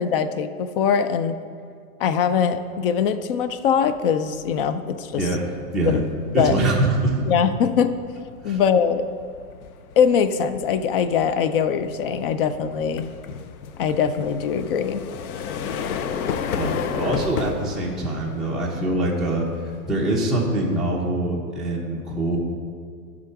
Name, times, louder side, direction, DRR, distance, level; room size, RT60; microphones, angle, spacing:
voice 1, 0.0-1.4 2.0-5.3 5.8-6.0 6.3-6.6 7.3-8.0 8.4-9.1 10.0-13.1 13.8-15.0, left 7 dB, 40° left, 11 dB, 0.4 m, -22 dB
sound 1, 3.7-4.0 4.3-21.1, left 7 dB, 70° left, 0.7 m, -34 dB
voice 2, 5.1-6.0 6.3-7.2 8.4-8.6 16.6-19.5 19.9-22.4, right 2 dB, ahead, -6 dB, 0.9 m, -24 dB
11.0 x 3.8 x 5.8 m, 2.2 s
hypercardioid pair, 140°, 44 cm